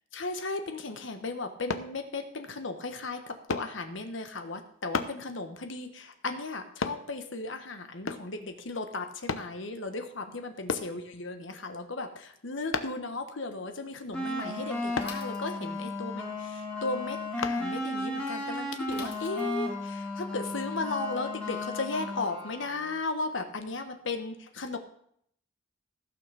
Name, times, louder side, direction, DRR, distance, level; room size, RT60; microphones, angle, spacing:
voice 1, 0.1-24.8, left 3 dB, 70° left, 7 dB, 1.2 m, -36 dB
sound 1, 1.7-1.9 3.5-3.7 4.9-5.2 6.8-7.0 8.1-8.3 9.3-9.5 10.7-10.9 12.7-13.0 14.9-15.2 17.4-17.6 18.2-18.3, left 4 dB, 90° left, 0.9 m, -32 dB
sound 2, 14.1-22.9, left 2 dB, 5° left, 2.2 m, -34 dB
Bicycle / Mechanisms, 15.0-16.0 18.9-19.8, left 3 dB, 30° left, 2.2 m, -47 dB
15.5 x 6.1 x 6.8 m, 0.67 s
head